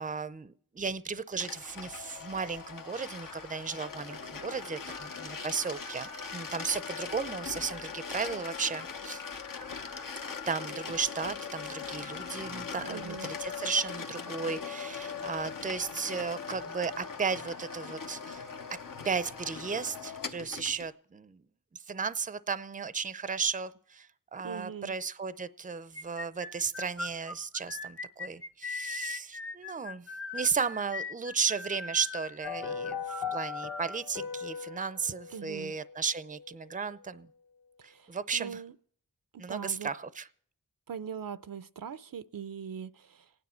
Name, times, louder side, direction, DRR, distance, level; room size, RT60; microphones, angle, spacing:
voice 1, 0.0-9.2 10.5-18.5 19.0-21.4 21.7-30.1 30.3-37.3 37.8-38.6 39.4-40.3, right 5 dB, 20° right, 0.5 m, -35 dB
sound 1, 1.4-20.9, left 6 dB, 65° left, 1.0 m, -40 dB
voice 2, 12.9-13.3 24.4-24.9 35.3-35.8 37.8-38.7 39.3-39.9 40.9-43.3, right 7 dB, 65° right, 0.6 m, -41 dB
sound 2, 25.9-34.0, left 3 dB, 35° left, 1.1 m, -40 dB
sound 3, 32.4-36.7 37.0-37.1, left 7 dB, 80° left, 2.0 m, -39 dB
27.0 x 9.6 x 4.3 m
wide cardioid pair, 75°, 36 cm